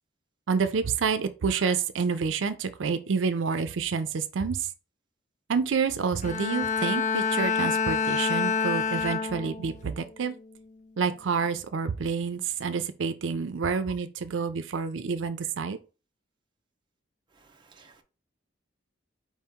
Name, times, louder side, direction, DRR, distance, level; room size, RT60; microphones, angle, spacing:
voice 1, 0.5-4.7 5.5-10.4 11.0-15.8, right 5 dB, 90° right, 0.5 m, -28 dB
Bowed string instrument, 6.2-9.8 10.3-10.6, left 5 dB, 40° left, 0.4 m, -27 dB
voice 2, 17.3-18.0, right 4 dB, 25° right, 0.6 m, -57 dB
4.6 x 2.9 x 3.5 m
head